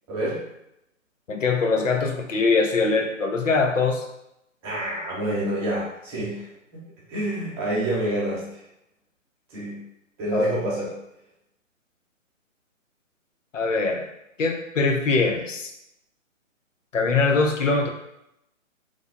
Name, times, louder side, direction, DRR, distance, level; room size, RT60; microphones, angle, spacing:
voice 1, 0.1-0.4 4.6-8.4 9.5-9.8 10.2-10.9, right 1 dB, 20° right, -7 dB, 0.9 m, -28 dB
voice 2, 1.3-4.1 10.3-10.6 13.5-14.1 14.4-15.7 16.9-17.9, left 4 dB, 70° left, 3 dB, 0.7 m, -22 dB
3.2 x 2.2 x 3.8 m, 0.83 s
figure-of-eight pair, 140°, 39 cm